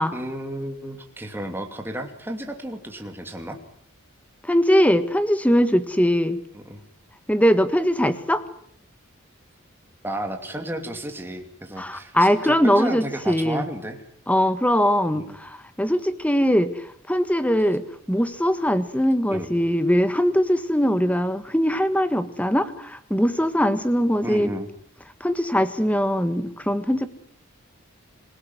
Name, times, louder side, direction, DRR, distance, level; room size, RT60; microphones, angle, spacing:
voice 1, 0.0-3.6 6.5-6.8 10.0-14.0 15.1-15.4 19.3-19.5 24.2-24.7, right 1 dB, 10° right, 4 dB, 2.7 m, -32 dB
voice 2, 4.5-6.4 7.3-8.4 11.8-13.6 14.3-16.7 17.1-24.5 25.2-27.1, equal, 5° left, 12 dB, 1.5 m, -21 dB
27.0 x 18.0 x 9.6 m, 0.65 s
head